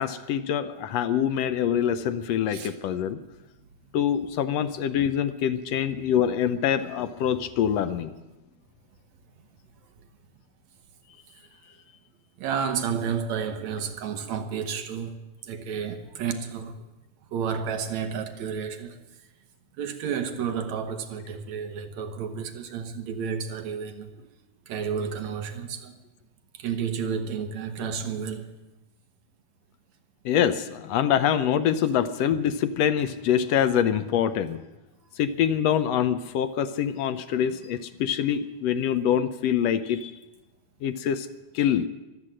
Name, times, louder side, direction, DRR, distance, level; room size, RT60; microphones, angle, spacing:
voice 1, 0.0-3.2 3.9-8.1 30.2-34.6 35.2-40.1 40.8-41.3 41.5-41.9, left 9 dB, 75° left, 1.6 m, -25 dB
voice 2, 12.4-15.2 15.4-16.8 17.3-19.0 19.8-24.1 24.7-26.0 26.6-28.5, right 7 dB, 70° right, 2.3 m, -31 dB
23.5 x 8.1 x 7.6 m
omnidirectional pair, 3.4 m